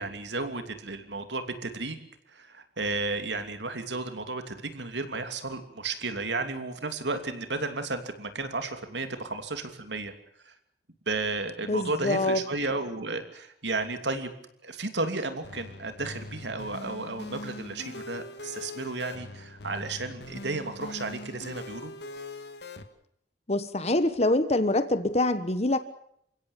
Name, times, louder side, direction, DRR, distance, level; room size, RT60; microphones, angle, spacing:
voice 1, 0.0-2.0 2.3-10.1 10.4-10.5 11.1-14.3 14.6-21.9, right 3 dB, 75° right, 8 dB, 2.9 m, -33 dB
voice 2, 11.7-12.4 23.5-25.8, left 2 dB, 35° left, 11 dB, 1.3 m, -25 dB
sound 1, 15.4-22.8, left 2 dB, 65° left, 2.2 m, -42 dB
29.0 x 16.5 x 7.4 m, 0.73 s
head